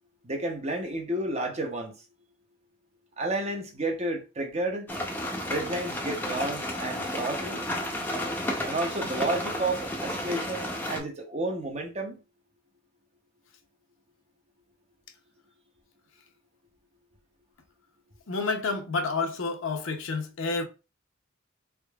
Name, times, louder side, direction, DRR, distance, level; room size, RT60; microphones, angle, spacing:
voice 1, 0.2-2.0 3.2-5.0 5.5-7.6 8.6-12.2, right 2 dB, 30° right, 0.6 m, -31 dB
sound 1, 4.9-11.0, left 1 dB, 10° left, 0.5 m, -32 dB
voice 2, 18.3-20.6, left 3 dB, 65° left, 0.7 m, -29 dB
3.6 x 3.6 x 2.3 m
head